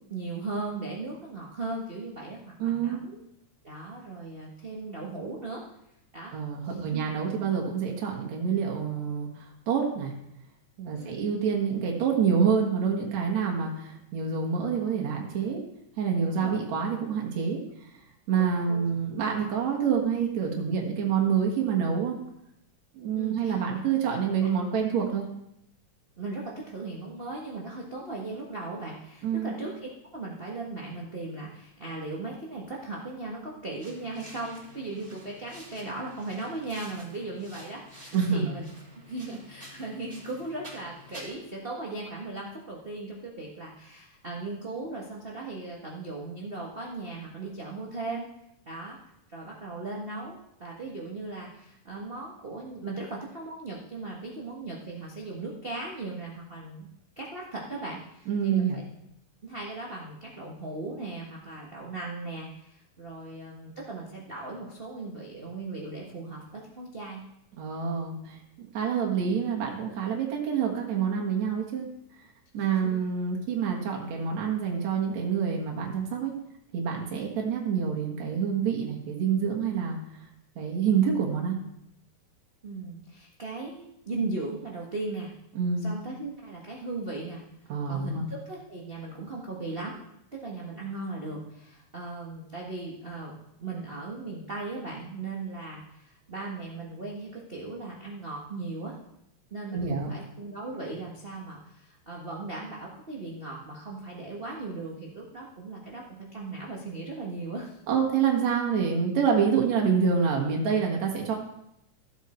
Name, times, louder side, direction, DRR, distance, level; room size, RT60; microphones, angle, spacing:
voice 1, 0.1-3.2 3.6-5.6 6.1-6.3 6.6-7.0 10.9-11.3 16.2-16.6 18.4-18.8 23.1-23.8 24.4-24.5 26.2-38.7 38.9-48.3 48.6-49.0 49.3-56.9 57.2-58.8 59.4-67.2 72.5-73.0 82.6-85.3 85.8-87.4 87.9-90.0 90.3-99.0 99.5-107.8, right 3 dB, 40° right, -3 dB, 0.8 m, -38 dB
voice 2, 2.6-3.0 6.3-10.1 10.8-15.6 16.0-18.0 18.3-22.2 22.9-25.3 29.2-29.6 38.1-38.6 58.3-58.8 67.6-71.9 72.1-72.3 72.5-76.3 76.7-80.3 80.6-81.6 85.6-85.9 87.7-88.2 99.7-100.1 107.9-111.3, right 6 dB, 65° right, -1 dB, 2.7 m, -27 dB
sound 1, 33.8-41.3, equal, 5° right, 3.4 m, -49 dB
15.0 x 8.1 x 4.3 m, 0.79 s
omnidirectional pair, 3.5 m